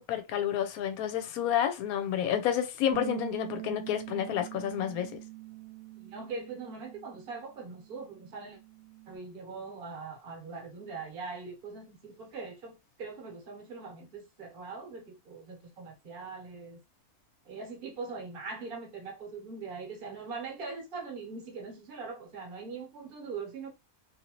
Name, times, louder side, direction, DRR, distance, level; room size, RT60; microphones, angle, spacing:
voice 1, 0.0-5.1, left 10 dB, 75° left, 1.0 m, -30 dB
Bass guitar, 2.9-9.2, right 17 dB, 85° right, 1.1 m, -44 dB
voice 2, 5.9-8.6 9.1-16.8 17.4-23.7, right 4 dB, 45° right, 1.0 m, -42 dB
2.7 x 2.6 x 2.9 m
omnidirectional pair, 1.6 m